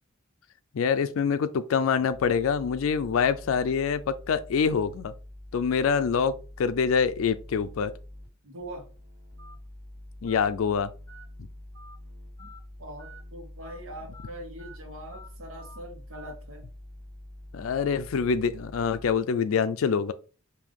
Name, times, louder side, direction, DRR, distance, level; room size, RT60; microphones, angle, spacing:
voice 1, 0.7-5.1 5.5-7.9 10.2-10.9 17.5-20.1, left 6 dB, 80° left, 0.4 m, -25 dB
sound 1, 2.1-8.3 8.6-19.2, left 1 dB, 50° right, 1.5 m, -46 dB
voice 2, 8.4-8.9 12.4-12.5 12.8-16.7, right 1 dB, 85° right, 1.2 m, -42 dB
Telephone, 9.4-9.5 10.3-10.4 11.1-11.2 11.7-12.0 12.4-12.6 13.0-13.2 13.6-13.8 14.1-14.3 14.6-14.8 15.1-15.3 15.6-15.8 16.1-16.3, equal, 15° left, 1.3 m, -49 dB
5.2 x 2.7 x 3.6 m
head